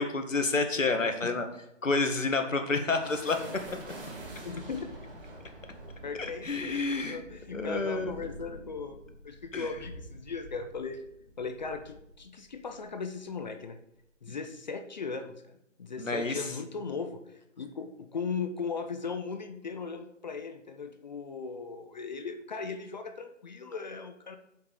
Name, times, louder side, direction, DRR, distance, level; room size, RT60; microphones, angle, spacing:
voice 1, 0.0-1.5 1.8-3.4 3.7-3.8 6.2-7.2 7.5-8.2 9.5-9.7 16.0-16.4, left 3 dB, 85° left, 6 dB, 2.0 m, -29 dB
sound 1, 2.5-12.9, right 1 dB, 45° right, 3.6 m, -47 dB
voice 2, 4.4-4.9 6.0-9.0 9.2-11.0 11.4-13.8 14.2-24.4, left 5 dB, 35° left, 7 dB, 0.8 m, -38 dB
7.6 x 5.5 x 6.7 m, 0.78 s
figure-of-eight pair, 155°, 38 cm